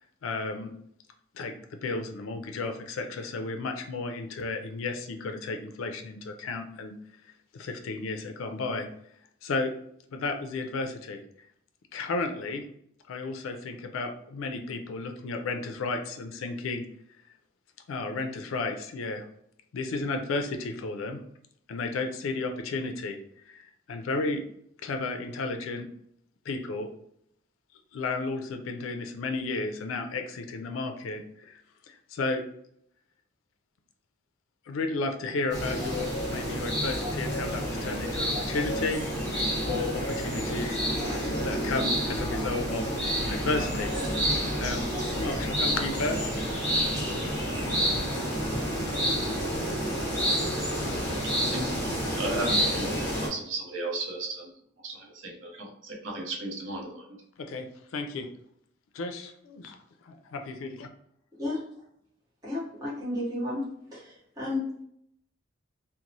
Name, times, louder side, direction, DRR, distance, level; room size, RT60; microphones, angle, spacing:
voice 1, 0.2-0.7 1.3-6.9 7.5-8.9 9.4-9.7 10.1-11.2 11.9-12.6 13.1-16.9 17.9-19.3 19.7-21.2 21.7-24.4 24.8-25.9 26.5-26.9 27.9-31.6 31.9-32.4 34.7-39.0 39.7-40.8 41.4-42.9 43.3-43.9 44.2-44.9 45.2-46.9 57.4-57.7 57.9-58.3 58.9-59.8 60.0-60.9, left 3 dB, 90° left, 6 dB, 0.4 m, -33 dB
sound 1, 35.5-53.3, equal, 15° left, 1.4 m, -29 dB
voice 2, 51.2-54.5 54.8-57.2, right 2 dB, 75° right, 0 dB, 0.6 m, -35 dB
voice 3, 62.4-63.6 63.9-64.8, left 2 dB, 20° right, -7 dB, 1.1 m, -32 dB
2.9 x 2.0 x 2.6 m, 0.70 s
head